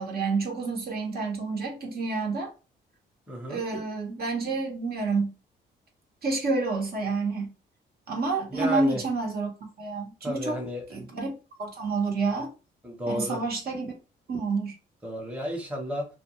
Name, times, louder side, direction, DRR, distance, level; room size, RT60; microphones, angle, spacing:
voice 1, 0.0-2.5 3.5-5.4 6.2-7.5 8.1-10.6 10.9-11.3 11.6-12.5 13.1-13.9 14.3-14.8, right 3 dB, 50° right, 0.8 m, -29 dB
voice 2, 3.3-3.6 8.5-9.0 10.2-10.8 12.8-13.4 15.0-16.1, equal, 5° right, 0.9 m, -32 dB
2.4 x 2.2 x 3.0 m
cardioid pair, 90°, 20 cm